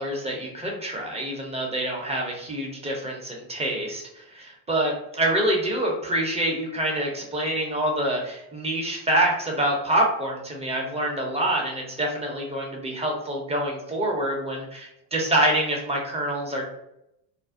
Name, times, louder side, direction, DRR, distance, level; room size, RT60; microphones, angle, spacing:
voice 1, 0.0-16.6, right 1 dB, 15° right, -1 dB, 0.5 m, -26 dB
2.5 x 2.0 x 2.4 m, 0.82 s
supercardioid pair, 100°, 48 cm